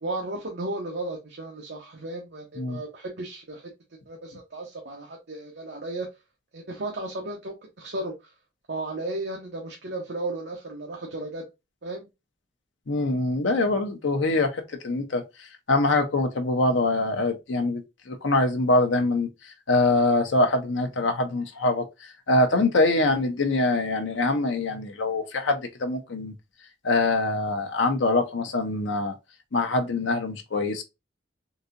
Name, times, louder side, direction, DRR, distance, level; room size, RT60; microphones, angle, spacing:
voice 1, 0.0-3.7 4.1-6.1 6.5-8.3 8.7-11.4 11.8-12.1, right 2 dB, 60° right, 0.8 m, -34 dB
voice 2, 12.9-26.3 26.8-29.1 29.5-30.8, left 2 dB, 80° left, 0.7 m, -24 dB
3.9 x 2.7 x 2.5 m
head